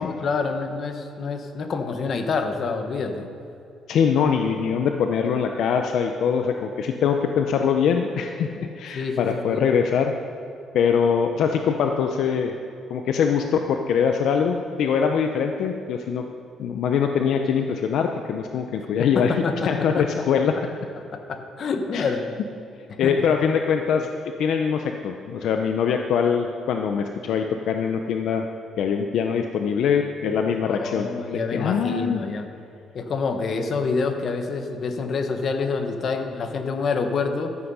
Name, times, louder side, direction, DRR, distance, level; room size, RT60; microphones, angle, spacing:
voice 1, 0.0-3.3 8.9-9.7 19.1-20.2 21.1-22.2 22.9-23.1 30.7-32.5 32.9-37.5, left 4 dB, 45° left, 6 dB, 1.1 m, -27 dB
voice 2, 3.9-10.1 10.7-12.5 12.9-16.2 16.6-19.3 19.7-20.5 21.9-22.1 23.0-24.1 24.4-28.5 28.8-32.2, left 7 dB, 70° left, 5 dB, 0.7 m, -23 dB
13.5 x 8.8 x 5.5 m, 2.7 s
cardioid pair, 125°, 0 cm